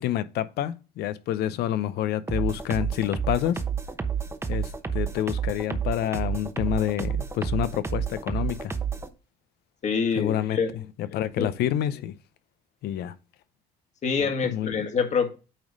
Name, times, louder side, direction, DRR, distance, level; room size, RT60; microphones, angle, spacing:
voice 1, 0.0-3.6 4.5-8.7 10.2-10.6 11.1-12.1 12.8-13.1 14.2-14.8, left 11 dB, 75° left, 0.7 m, -28 dB
sound 1, 2.3-9.1, right 7 dB, 15° right, 0.9 m, -30 dB
voice 2, 9.8-10.8 11.4-11.5 14.0-15.4, left 5 dB, 45° left, 1.8 m, -26 dB
9.0 x 3.1 x 5.2 m
cardioid pair, 110°, 17 cm